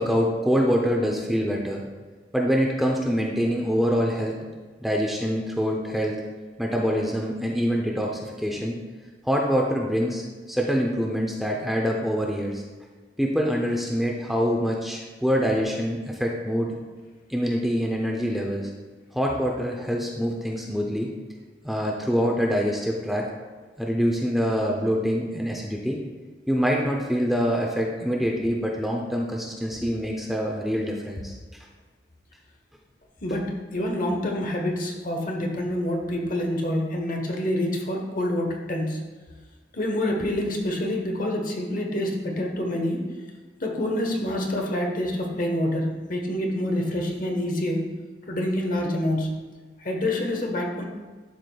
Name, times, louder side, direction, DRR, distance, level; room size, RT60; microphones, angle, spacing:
voice 1, 0.0-1.9 2.3-4.4 4.8-6.2 6.6-8.8 9.2-12.6 13.2-16.7 17.3-18.7 19.1-21.1 21.6-23.3 23.8-26.0 26.5-31.3, equal, ahead, -1 dB, 0.6 m, -25 dB
voice 2, 33.2-39.0 39.7-43.1 43.6-47.8 48.3-49.3 49.8-50.8, left 1 dB, 50° left, 1 dB, 1.1 m, -27 dB
11.5 x 5.0 x 2.3 m, 1.4 s
head